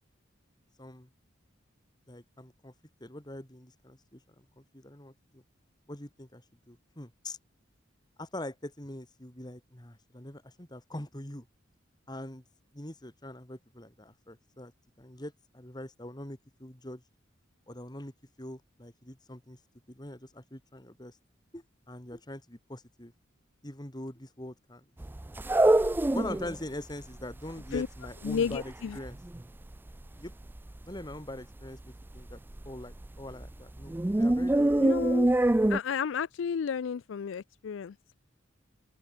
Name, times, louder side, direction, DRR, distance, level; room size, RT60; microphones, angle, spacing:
voice 1, 0.8-1.1 2.1-2.7 3.0-5.4 5.9-7.4 8.2-11.5 12.1-12.4 12.7-14.7 15.0-17.0 17.7-18.1 18.4-19.6 19.9-21.2 21.5-23.1 23.6-24.8 26.1-29.2 30.1-30.3 30.9-32.4 32.6-34.7 35.0-35.2, left 1 dB, 20° left, 2.6 m, -43 dB
sound 1, 25.0-26.6 26.9-27.0 27.2-29.4 29.7-29.9 30.3-30.8 31.1-31.2 31.6-31.7 32.2-33.5 33.8-35.8, right 1 dB, 10° right, 0.3 m, -25 dB
voice 2, 28.2-29.0 34.8-35.3 35.7-37.9, left 7 dB, 75° left, 0.4 m, -32 dB
open air
head